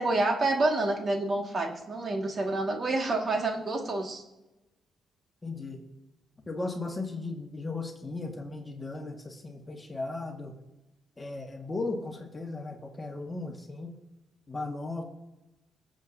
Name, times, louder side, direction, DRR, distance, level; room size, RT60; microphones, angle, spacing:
voice 1, 0.0-4.2, right 2 dB, 40° right, 2 dB, 1.9 m, -28 dB
voice 2, 5.4-5.8 6.5-10.5 11.2-13.9 14.5-15.0, left 3 dB, 20° left, 2 dB, 1.7 m, -36 dB
21.5 x 7.6 x 2.7 m, 0.97 s
cardioid pair, 90°, 0 cm